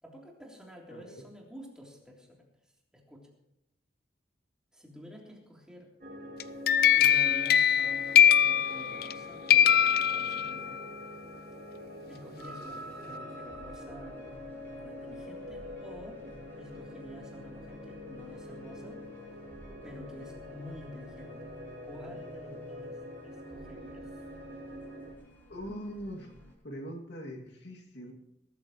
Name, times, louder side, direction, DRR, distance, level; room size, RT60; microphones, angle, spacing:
voice 1, 0.0-2.4 2.9-3.3 4.7-5.9 6.9-10.9 12.1-14.2 14.7-16.2 16.6-19.0 19.8-24.2, left 1 dB, 5° right, -2 dB, 3.4 m, -49 dB
voice 2, 0.9-1.2 25.5-26.3 26.6-28.1, equal, 70° left, 1 dB, 2.4 m, -41 dB
sound 1, 6.0-25.1, left 1 dB, 55° right, 4.6 m, -45 dB
sound 2, 6.4-9.2 9.5-10.8, left 9 dB, 55° left, 0.4 m, -22 dB
sound 3, 12.4-26.5, equal, 10° left, 5.4 m, -51 dB
21.0 x 13.5 x 3.1 m, 0.84 s
head